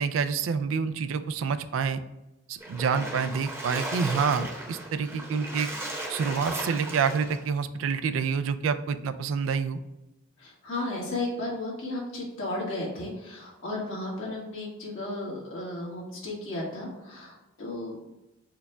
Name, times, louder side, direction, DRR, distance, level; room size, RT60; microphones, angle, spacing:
voice 1, 0.0-2.0 2.5-5.7 6.1-9.8, right 6 dB, 80° right, 11 dB, 0.3 m, -27 dB
Splash splatter, 2.6-7.5, right 1 dB, 15° right, 0.8 m, -36 dB
voice 2, 10.4-18.1, left 2 dB, 75° left, -4 dB, 1.5 m, -34 dB
4.6 x 2.2 x 4.7 m, 0.93 s
head